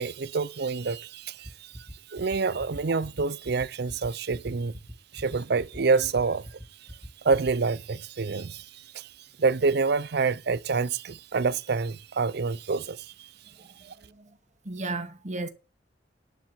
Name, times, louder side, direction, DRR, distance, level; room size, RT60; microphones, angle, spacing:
voice 1, 0.0-1.5 2.1-4.7 5.1-6.4 7.2-8.6 8.9-9.1 9.4-13.1, right 4 dB, 60° right, 0.6 m, -27 dB
sound 1, 1.4-7.5, equal, ahead, 2.4 m, -41 dB
voice 2, 13.6-14.4 14.6-15.5, right 2 dB, 40° right, 2.1 m, -35 dB
10.5 x 7.4 x 7.2 m
head